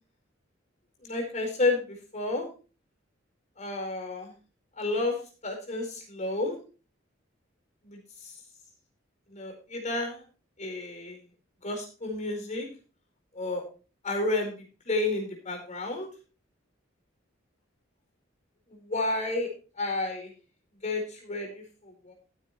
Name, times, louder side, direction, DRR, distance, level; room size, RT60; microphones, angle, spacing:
voice 1, 1.0-2.5 3.6-4.3 4.8-5.2 5.4-6.6 7.8-8.3 9.3-10.2 10.6-11.2 11.6-12.7 13.3-13.6 14.0-16.1 18.7-19.5 19.8-20.3 20.8-22.1, left 2 dB, 40° left, 2 dB, 4.6 m, -31 dB
14.5 x 9.5 x 3.1 m, 0.34 s
head